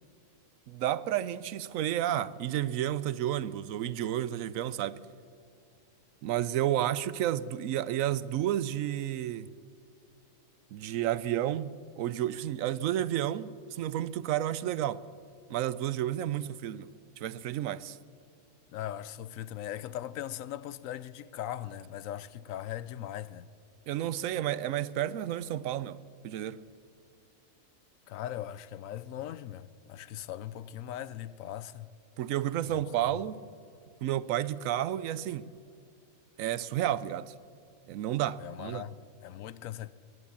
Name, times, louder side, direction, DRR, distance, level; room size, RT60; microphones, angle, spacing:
voice 1, 0.7-5.0 6.2-9.5 10.7-15.0 15.5-18.0 23.9-26.6 32.2-33.4 34.0-35.5 36.4-37.3 37.9-38.8, right 12 dB, 80° right, 1.0 m, -31 dB
voice 2, 18.7-23.5 28.1-31.9 32.7-32.8 38.4-39.9, left 11 dB, 75° left, 1.0 m, -39 dB
19.0 x 10.5 x 7.1 m
omnidirectional pair, 1.4 m